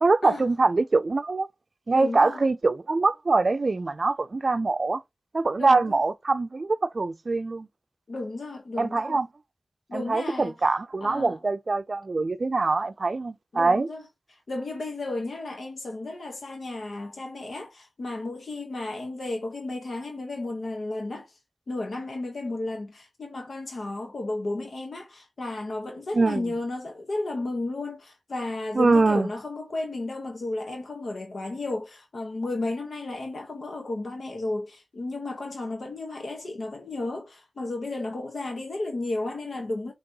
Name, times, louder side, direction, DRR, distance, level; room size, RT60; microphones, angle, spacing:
voice 1, 0.0-1.5 1.9-5.0 5.3-7.7 8.8-9.3 9.9-13.9 26.1-26.4 28.7-29.3, right 3 dB, 65° right, 0.4 m, -23 dB
voice 2, 1.9-2.4 5.6-6.0 8.1-9.2 9.9-10.5 11.0-11.4 13.5-14.0 14.3-21.3 21.7-39.9, left 2 dB, 85° left, 1.0 m, -33 dB
5.3 x 3.0 x 2.9 m
cardioid pair, 45°, 0 cm